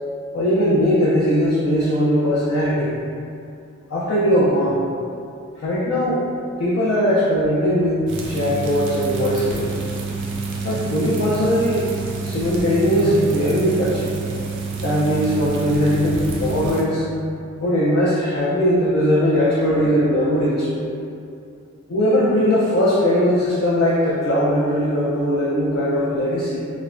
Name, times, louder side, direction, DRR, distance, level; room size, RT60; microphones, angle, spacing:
voice 1, 0.3-3.0 3.9-4.8 5.6-6.2 6.6-9.7 10.6-11.9 12.2-14.1 14.8-17.1 17.5-20.9 21.9-26.7, equal, 60° left, -7 dB, 0.4 m, -19 dB
sound 1, 8.1-16.8, right 4 dB, 55° right, 0.4 m, -28 dB
3.0 x 2.0 x 2.4 m, 2.6 s
head